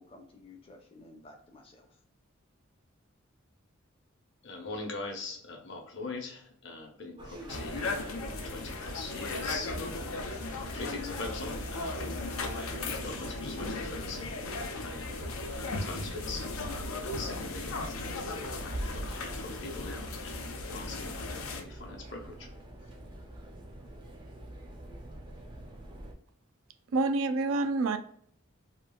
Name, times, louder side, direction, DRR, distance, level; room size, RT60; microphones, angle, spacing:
voice 1, 0.0-2.0, left 2 dB, 25° left, 3 dB, 0.5 m, -53 dB
voice 2, 4.4-22.5 22.8-22.9, left 3 dB, 55° left, 2 dB, 0.8 m, -43 dB
sound 1, 7.2-26.1, right 1 dB, 25° right, 0.4 m, -46 dB
sound 2, 7.5-21.6, left 2 dB, 90° left, 0.6 m, -37 dB
voice 3, 26.9-28.0, right 3 dB, 85° right, 9 dB, 0.4 m, -27 dB
3.0 x 2.4 x 2.2 m, 0.63 s
head